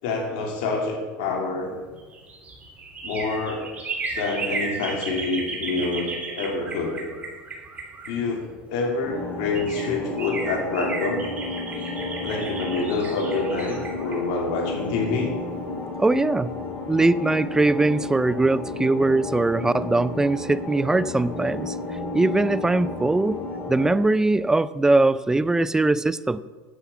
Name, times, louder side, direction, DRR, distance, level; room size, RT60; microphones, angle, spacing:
voice 1, 0.0-1.8 3.0-3.7 4.1-6.1 6.3-7.0 8.1-11.2 12.2-15.3, left 3 dB, 70° left, 0 dB, 3.1 m, -27 dB
sound 1, 1.9-8.7 9.2-9.3 9.5-15.3 15.7-15.8, right 3 dB, 25° right, 2.9 m, -34 dB
sound 2, 9.0-24.0, left 2 dB, 30° left, 2.8 m, -33 dB
voice 2, 16.0-16.5 16.9-21.8 22.1-23.4 23.7-26.4, right 2 dB, 10° right, 17 dB, 0.4 m, -21 dB
9.9 x 7.8 x 7.2 m, 1.4 s
supercardioid pair, 110°, 6 cm